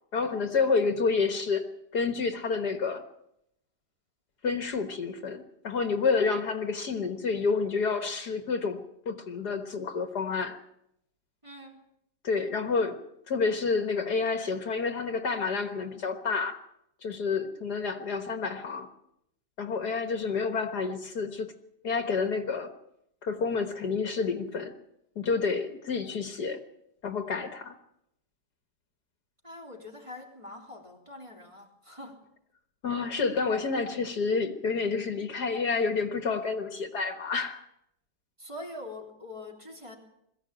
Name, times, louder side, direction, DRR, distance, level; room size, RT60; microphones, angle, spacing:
voice 1, 0.1-3.0 4.4-10.6 12.2-16.6 17.0-18.9 19.6-21.5 21.8-22.7 23.2-24.7 25.2-26.6 27.0-27.7 32.8-37.7, left 4 dB, 60° left, 7 dB, 1.9 m, -29 dB
voice 2, 11.4-11.9 29.4-32.2 38.4-40.0, left 1 dB, 15° right, 0 dB, 3.4 m, -44 dB
22.0 x 15.0 x 8.9 m, 0.79 s
omnidirectional pair, 2.0 m